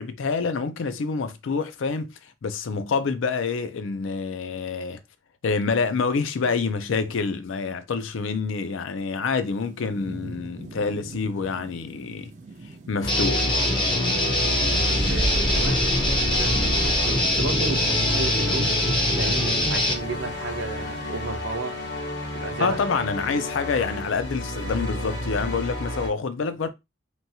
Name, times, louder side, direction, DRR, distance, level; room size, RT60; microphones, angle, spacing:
voice 1, 0.0-5.0 5.4-12.3 12.9-13.5 22.6-26.7, left 4 dB, 80° left, 0.4 m, -27 dB
Thunderstorm / Rain, 9.4-21.6, right 2 dB, 35° right, 0.4 m, -43 dB
sound 1, 13.0-26.1, equal, 60° left, 0.9 m, -29 dB
Guitar, 13.1-19.9, left 1 dB, 25° left, 0.5 m, -23 dB
voice 2, 15.1-18.7 19.1-21.8 22.3-22.8 23.1-23.3, right 3 dB, 70° right, 0.6 m, -33 dB
3.0 x 2.3 x 2.7 m
head